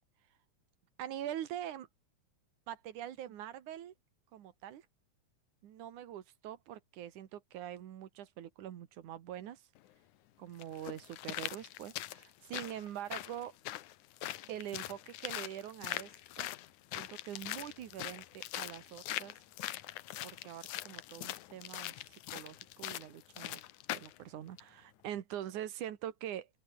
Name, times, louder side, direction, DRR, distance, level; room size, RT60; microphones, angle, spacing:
voice 1, 1.0-1.9 2.7-3.9 4.3-4.9 5.6-9.7 10.4-13.6 14.5-16.5 16.9-19.4 20.2-23.6 23.9-26.5, right 11 dB, 85° right, 3.1 m, -44 dB
sound 1, 9.8-9.9 10.6-24.2 24.6-24.7, left 15 dB, 90° left, 2.4 m, -42 dB
open air
omnidirectional pair, 3.4 m